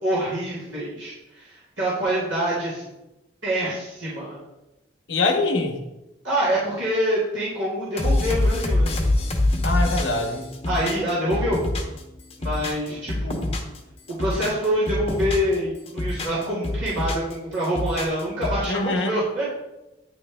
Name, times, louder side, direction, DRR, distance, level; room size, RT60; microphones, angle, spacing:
voice 1, 0.0-2.8 3.4-4.4 6.2-8.9 10.7-11.6 12.4-13.5 14.2-19.5, equal, 85° right, -9 dB, 2.0 m, -26 dB
voice 2, 5.1-5.8 9.6-10.5 18.7-19.2, left 2 dB, 70° left, 4 dB, 0.9 m, -23 dB
sound 1, 8.0-12.0 12.3-13.8 14.1-15.5 15.9-17.3 17.6-18.6, left 1 dB, 30° left, 0.8 m, -25 dB
9.6 x 3.3 x 3.4 m, 0.98 s
head